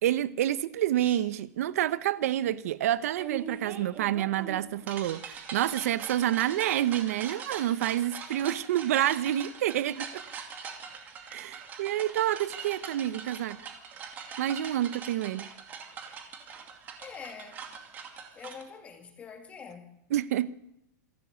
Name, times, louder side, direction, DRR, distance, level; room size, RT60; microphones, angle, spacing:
voice 1, 0.0-10.2 11.3-13.6 14.4-15.5 20.1-20.5, right 12 dB, 60° right, 0.7 m, -28 dB
sound 1, 0.9-1.2 3.2-18.6, right 6 dB, 20° right, 2.4 m, -42 dB
voice 2, 17.0-17.7 18.3-19.9, left 6 dB, 15° left, 2.4 m, -45 dB
26.5 x 12.0 x 8.1 m
supercardioid pair, 170°, 9 cm